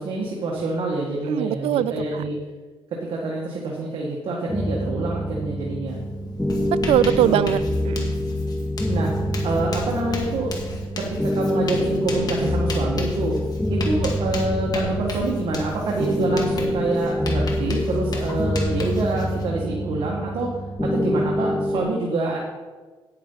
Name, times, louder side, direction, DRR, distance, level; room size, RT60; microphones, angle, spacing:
voice 1, 0.0-2.4 2.9-6.0 7.2-7.5 8.9-9.1 9.4-10.5 11.0-13.4 13.7-20.5 20.8-22.4, right 2 dB, 65° right, -2 dB, 1.8 m, -26 dB
voice 2, 1.3-2.2 6.7-8.1, right 12 dB, 80° right, 18 dB, 0.3 m, -22 dB
sound 1, 4.5-21.8, equal, 10° left, 1.7 m, -26 dB
Writing, 5.9-6.1 6.3-19.4, left 2 dB, 45° left, 2.1 m, -34 dB
9.7 x 9.5 x 4.0 m, 1.3 s
cardioid pair, 90°, 10 cm